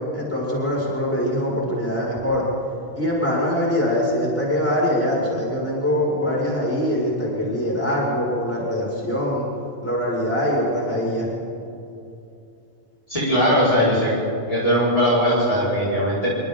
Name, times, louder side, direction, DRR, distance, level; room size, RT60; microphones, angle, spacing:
voice 1, 0.1-2.5 3.0-9.5 9.8-11.3, equal, 10° left, -5 dB, 6.2 m, -23 dB
voice 2, 13.1-14.1 14.5-16.3, equal, 30° left, -9 dB, 5.4 m, -19 dB
27.5 x 25.0 x 3.9 m, 2.6 s
omnidirectional pair, 1.2 m